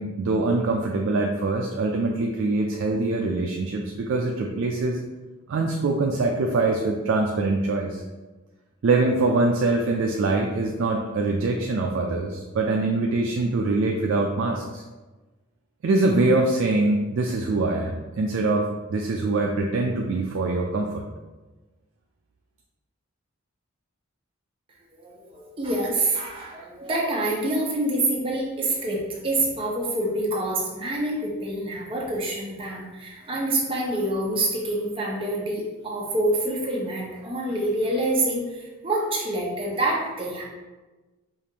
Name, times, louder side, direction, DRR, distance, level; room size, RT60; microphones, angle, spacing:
voice 1, 0.0-5.0 5.5-8.0 8.8-14.8 15.8-21.1, right 2 dB, 65° right, 1 dB, 0.3 m, -24 dB
voice 2, 25.0-40.4, right 1 dB, 25° right, -4 dB, 0.7 m, -26 dB
4.9 x 2.5 x 2.8 m, 1.2 s
head